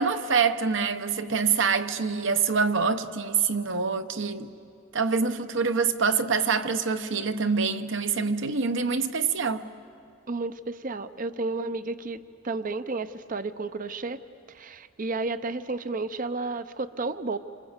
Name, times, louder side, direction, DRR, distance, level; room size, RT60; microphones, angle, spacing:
voice 1, 0.0-4.5 4.9-9.6, right 5 dB, 65° right, 1.0 m, -25 dB
voice 2, 10.3-12.2 12.4-14.2 14.5-17.4, right 3 dB, 45° right, 0.7 m, -32 dB
28.0 x 26.0 x 8.1 m
head